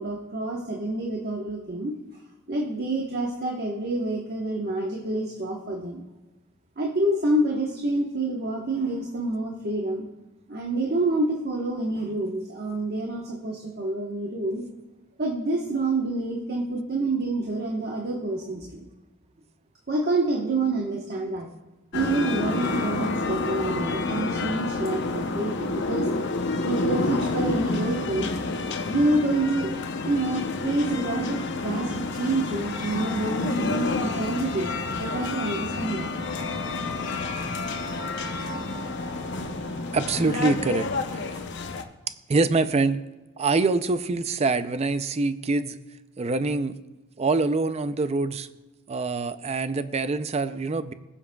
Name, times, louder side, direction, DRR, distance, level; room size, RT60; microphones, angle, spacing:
voice 1, 0.0-1.9 2.5-6.0 6.8-10.0 10.5-14.7 15.2-18.8 19.9-21.5 21.9-26.1 26.6-28.3 28.9-29.7 30.0-36.1, right 2 dB, 50° right, -1 dB, 1.1 m, -27 dB
sound 1, 21.9-41.8, left 3 dB, 60° left, 0.7 m, -29 dB
voice 2, 39.9-40.9 42.3-43.0 43.4-45.8 46.2-46.7 47.2-48.5 48.9-50.9, right 3 dB, 30° right, 12 dB, 0.4 m, -25 dB
21.0 x 7.2 x 2.3 m, 1.1 s
head